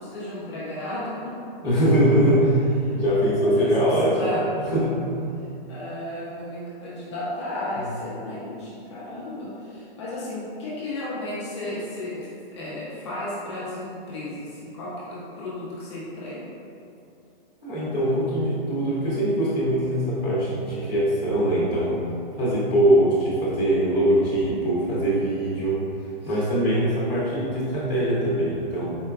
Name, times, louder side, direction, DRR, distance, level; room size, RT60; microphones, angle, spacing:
voice 1, 0.0-1.3 1.6-1.7 2.8-3.7 4.0-4.4 5.4-16.5 26.2-26.4, left 1 dB, 30° left, -8 dB, 0.7 m, -34 dB
voice 2, 1.6-2.6 2.9-5.0 17.6-22.0 22.4-25.8 26.3-29.0, right 1 dB, 10° right, -14 dB, 0.7 m, -22 dB
4.5 x 3.5 x 2.3 m, 2.6 s
hypercardioid pair, 180°, 29 cm